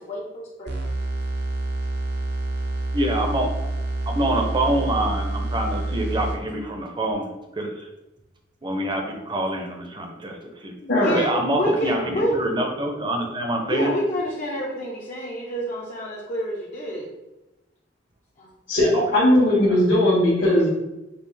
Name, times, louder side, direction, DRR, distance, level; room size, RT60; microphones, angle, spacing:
voice 1, 0.1-0.7 10.8-12.7 13.7-17.1 18.4-18.6, equal, 45° left, -5 dB, 0.7 m, -28 dB
sound 1, 0.7-6.7, right 2 dB, 60° right, 0.6 m, -28 dB
voice 2, 2.9-3.5 4.1-7.9 8.6-10.7 11.1-13.9 18.9-19.0 19.7-19.8, right 1 dB, 25° right, 3 dB, 0.6 m, -26 dB
voice 3, 10.9-11.2 18.7-20.7, left 1 dB, 70° left, -10 dB, 1.4 m, -18 dB
5.3 x 2.4 x 3.3 m, 0.97 s
head